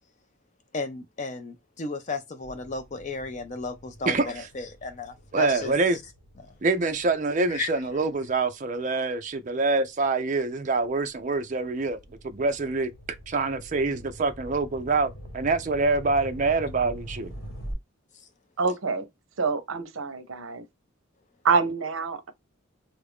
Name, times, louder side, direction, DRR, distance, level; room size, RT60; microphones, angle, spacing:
voice 1, 0.7-5.7 6.4-6.5 7.5-7.7, left 4 dB, 35° left, 0.4 m, -34 dB
sound 1, 2.4-9.2 9.8-17.7, equal, 70° left, 1.5 m, -45 dB
voice 2, 4.1-4.5 5.3-6.0 6.6-12.0 12.2-12.9 13.3-17.3, right 3 dB, 35° right, 0.4 m, -25 dB
voice 3, 18.6-19.1 19.4-20.6 21.4-22.3, right 5 dB, 80° right, 0.7 m, -26 dB
3.1 x 2.5 x 3.4 m
head